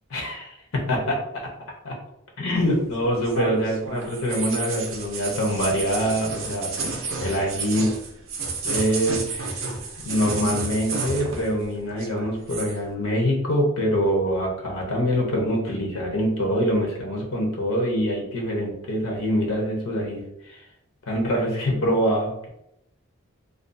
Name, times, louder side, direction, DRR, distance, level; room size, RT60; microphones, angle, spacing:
voice 1, 0.1-1.2 1.8-1.9 2.4-6.9 7.2-7.9 8.6-9.6 10.0-20.6 21.1-22.5, equal, 80° left, 0 dB, 0.7 m, -24 dB
sound 1, 2.6-11.7 11.9-12.8, right 4 dB, 75° right, 0.5 m, -31 dB
2.5 x 2.2 x 2.5 m, 0.81 s
head